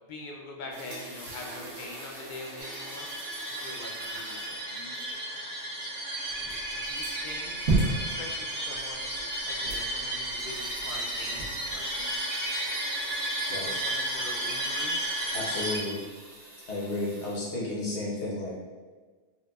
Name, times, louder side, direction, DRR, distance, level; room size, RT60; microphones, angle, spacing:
voice 1, 0.1-3.1 3.5-5.2 6.7-9.1 9.4-12.2 13.6-15.0, left 2 dB, 55° left, -1 dB, 0.5 m, -44 dB
sound 1, 0.7-17.3, right 1 dB, 85° right, 1.3 m, -48 dB
sound 2, 2.6-15.8, right 1 dB, 50° right, 0.8 m, -33 dB
sound 3, 6.3-12.2, right 2 dB, 65° right, 1.3 m, -34 dB
voice 2, 15.3-15.9 16.7-18.6, left 2 dB, 75° left, -5 dB, 1.2 m, -32 dB
4.4 x 2.2 x 2.3 m, 1.4 s
omnidirectional pair, 1.2 m